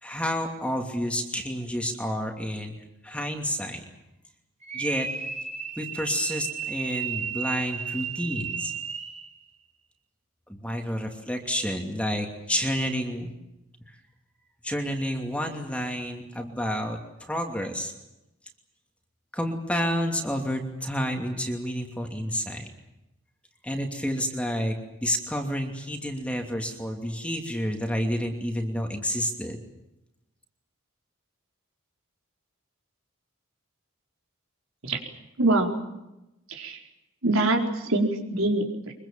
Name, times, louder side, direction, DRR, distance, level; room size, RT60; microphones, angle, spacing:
voice 1, 0.0-2.7 3.0-3.8 4.7-5.1 5.8-8.7 10.5-13.3 14.6-17.9 19.3-22.7 23.6-29.6, equal, 5° left, 3 dB, 2.8 m, -30 dB
sound 1, 4.6-9.3, right 7 dB, 30° right, 3.0 m, -33 dB
voice 2, 35.4-35.8 36.5-36.8 37.2-38.9, right 2 dB, 75° right, 2 dB, 4.5 m, -24 dB
24.5 x 23.0 x 7.5 m, 0.91 s
head